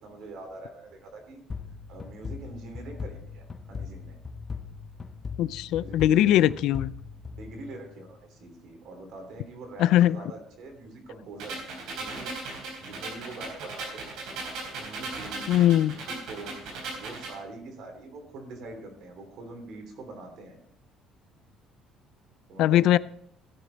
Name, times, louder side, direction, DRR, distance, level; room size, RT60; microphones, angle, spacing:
voice 1, 0.0-1.4 1.9-4.2 5.7-6.4 7.3-11.7 12.0-12.3 12.8-14.3 14.7-15.6 15.9-20.6 22.5-22.9, right 2 dB, 55° right, 3.0 m, -44 dB
sound 1, 1.5-8.1, left 5 dB, 20° left, 0.6 m, -40 dB
voice 2, 5.4-7.0 9.8-10.2 15.5-16.0 22.6-23.0, left 12 dB, 65° left, 0.3 m, -21 dB
sound 2, 11.4-17.4, right 3 dB, 75° right, 4.0 m, -37 dB
15.5 x 6.7 x 4.0 m
cardioid pair, 180°, 0 cm